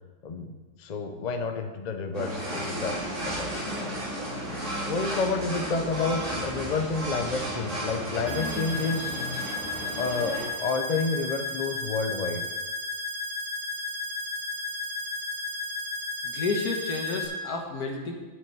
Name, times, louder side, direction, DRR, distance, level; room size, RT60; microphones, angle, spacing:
voice 1, 0.2-3.5 4.8-9.3 10.0-12.4, left 4 dB, 45° left, 7 dB, 0.6 m, -30 dB
sound 1, 2.1-10.5, equal, 50° right, 2.7 m, -33 dB
sound 2, 8.3-17.3, left 2 dB, 80° right, 4.0 m, -33 dB
voice 2, 16.2-18.1, left 3 dB, 75° left, 2 dB, 1.9 m, -31 dB
7.9 x 6.2 x 8.1 m, 1.3 s
omnidirectional pair, 1.7 m